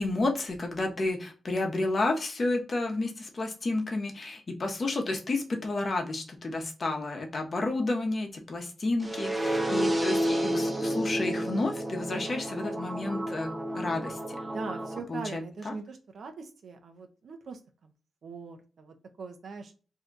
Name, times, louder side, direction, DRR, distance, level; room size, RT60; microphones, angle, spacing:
voice 1, 0.0-14.4 15.1-15.7, left 2 dB, 45° left, 3 dB, 0.8 m, -31 dB
sound 1, 9.0-15.0, right 1 dB, 20° right, 0.6 m, -30 dB
voice 2, 14.4-17.9 18.2-19.7, right 4 dB, 70° right, 5 dB, 0.6 m, -42 dB
2.8 x 2.3 x 3.8 m, 0.35 s
wide cardioid pair, 100°, 0 cm